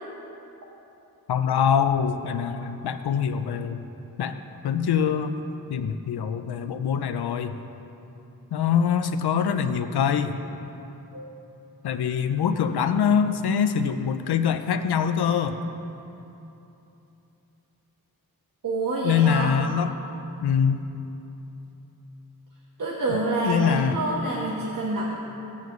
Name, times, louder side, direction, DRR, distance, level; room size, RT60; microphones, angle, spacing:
voice 1, 1.3-3.8 4.2-5.3 5.7-7.5 8.5-10.4 11.8-15.6 19.0-19.9 20.4-20.9 23.4-24.0, left 7 dB, 85° left, 8 dB, 0.6 m, -24 dB
voice 2, 18.6-19.5 22.8-25.0, right 2 dB, 55° right, -5 dB, 1.4 m, -27 dB
19.0 x 7.3 x 3.1 m, 3.0 s
wide cardioid pair, 100°, 38 cm